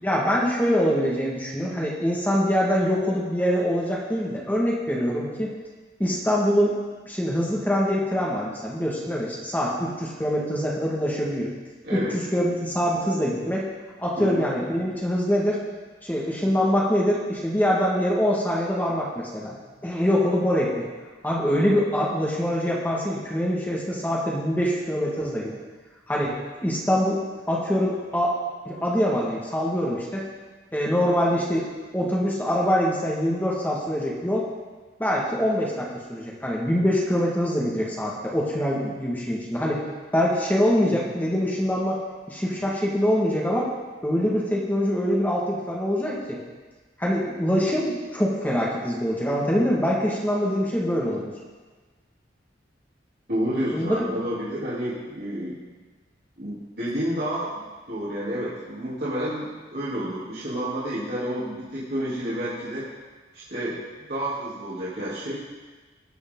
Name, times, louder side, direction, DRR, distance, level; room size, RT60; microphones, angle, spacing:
voice 1, 0.0-5.5 6.0-6.8 7.0-11.5 11.9-13.7 14.0-15.6 16.0-19.6 19.8-20.9 21.2-25.6 26.1-26.3 26.6-27.2 27.5-28.3 28.7-30.2 30.7-31.7 31.9-34.5 35.0-39.8 40.1-42.0 42.3-43.7 44.0-46.4 47.0-51.3 53.7-54.1, equal, 10° left, -4 dB, 1.9 m, -24 dB
voice 2, 11.8-12.2 14.2-14.4 40.8-41.0 53.3-55.6 56.4-62.9 63.3-63.8 64.1-65.4, equal, 60° right, -11 dB, 3.3 m, -30 dB
20.0 x 7.1 x 3.9 m, 1.3 s
head